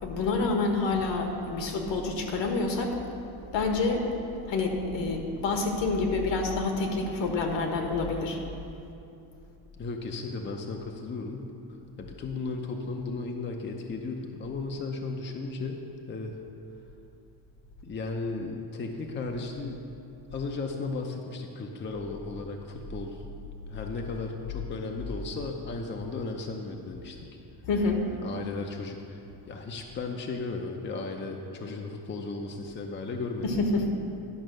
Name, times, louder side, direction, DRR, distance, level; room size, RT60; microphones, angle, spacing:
voice 1, 0.0-3.0 3.5-4.0 4.5-8.4 27.7-28.0 33.4-33.9, left 3 dB, 70° left, 3 dB, 1.5 m, -27 dB
voice 2, 9.7-11.5 12.0-15.8 16.1-16.4 17.8-19.8 20.3-23.2 23.7-27.4 28.1-29.2 29.5-33.6, left 3 dB, 25° left, 2 dB, 0.6 m, -35 dB
11.0 x 5.1 x 6.4 m, 2.7 s
cardioid pair, 130°, 46 cm